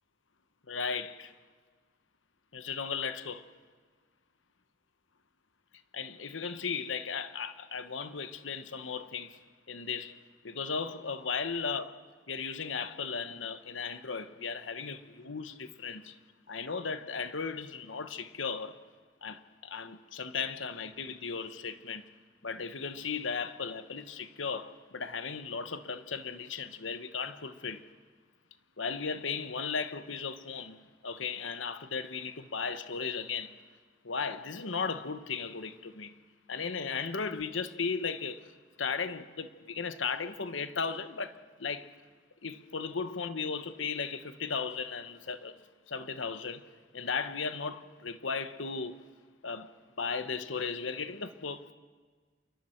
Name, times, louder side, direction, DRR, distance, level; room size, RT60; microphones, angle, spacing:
voice 1, 0.7-1.3 2.5-3.5 5.9-9.4 9.7-10.2 10.4-12.0 12.3-16.2 16.5-18.8 19.2-22.1 22.4-27.9 28.8-33.6 34.0-36.2 36.5-41.9 42.4-45.6 45.9-49.1 49.4-51.7, left 5 dB, 85° left, 1.0 m, -36 dB
28.5 x 23.0 x 4.5 m
head